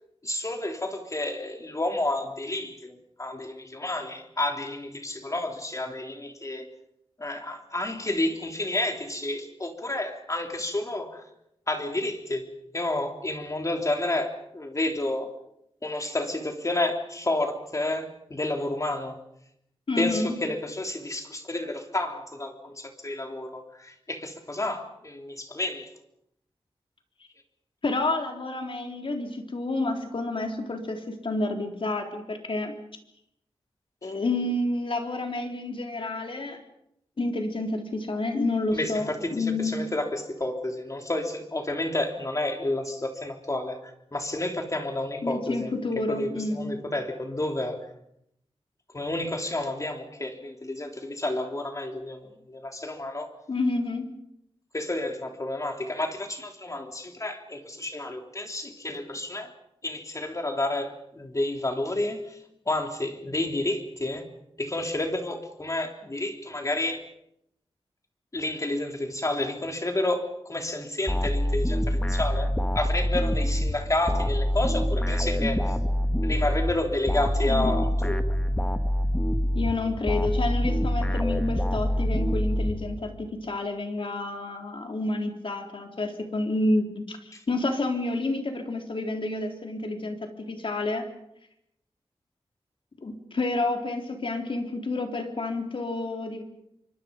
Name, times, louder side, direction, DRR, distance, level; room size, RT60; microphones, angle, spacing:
voice 1, 0.2-6.7 7.2-11.2 11.7-15.3 15.8-19.2 20.0-25.9 34.0-34.1 38.7-45.7 46.1-47.9 48.9-53.3 54.7-59.5 59.8-62.4 62.6-64.3 64.6-67.0 68.3-75.8 76.2-78.4 87.3-87.4, left 2 dB, 30° left, 4 dB, 3.4 m, -30 dB
voice 2, 19.9-20.4 27.8-32.7 34.0-36.6 37.2-39.9 45.2-46.7 53.5-54.1 77.4-77.7 79.5-91.0 93.0-96.4, left 2 dB, 60° left, 4 dB, 3.7 m, -29 dB
sound 1, 71.1-83.3, equal, 10° left, 1.6 m, -26 dB
28.5 x 24.0 x 5.4 m, 0.77 s
wide cardioid pair, 110°, 10 cm